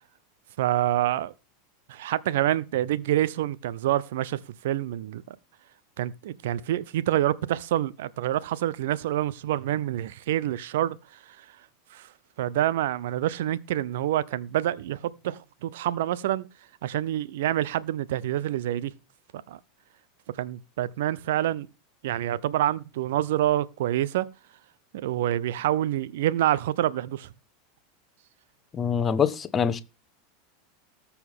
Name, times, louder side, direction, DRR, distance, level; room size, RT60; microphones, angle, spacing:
voice 1, 0.6-1.3 1.9-4.4 4.6-5.4 6.0-11.4 11.9-12.1 12.4-16.5 16.8-18.9 19.5-19.6 20.4-21.7 22.0-24.3 24.9-27.3, right 13 dB, 60° right, 0.6 m, -27 dB
voice 2, 28.7-29.8, left 7 dB, 25° left, 1.1 m, -24 dB
19.0 x 7.1 x 3.6 m
figure-of-eight pair, 85°, 0 cm